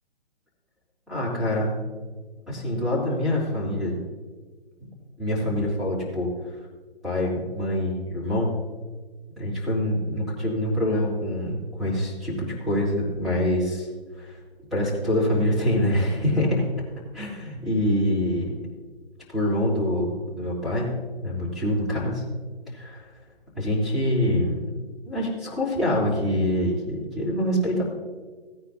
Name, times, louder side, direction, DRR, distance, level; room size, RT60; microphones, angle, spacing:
voice 1, 1.1-1.8 2.5-4.0 4.8-4.9 5.2-6.6 7.0-8.5 9.4-13.9 14.1-14.4 14.7-16.7 17.1-18.6 19.3-20.9 21.2-22.2 22.7-23.1 23.6-24.6 25.1-27.8, left 1 dB, ahead, -7 dB, 3.6 m, -25 dB
17.0 x 9.9 x 2.7 m, 1.4 s
figure-of-eight pair, 140°, 32 cm